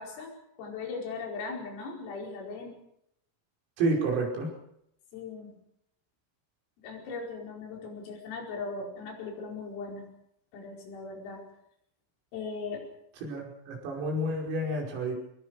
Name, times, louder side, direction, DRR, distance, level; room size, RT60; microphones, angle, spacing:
voice 1, 0.0-2.8 5.1-5.5 6.8-10.1 10.5-11.4 12.3-12.8, left 4 dB, 80° left, 0 dB, 7.5 m, -39 dB
voice 2, 3.8-4.5 13.2-15.1, right 2 dB, 85° right, 0 dB, 8.0 m, -29 dB
25.0 x 20.0 x 6.6 m, 0.76 s
omnidirectional pair, 5.9 m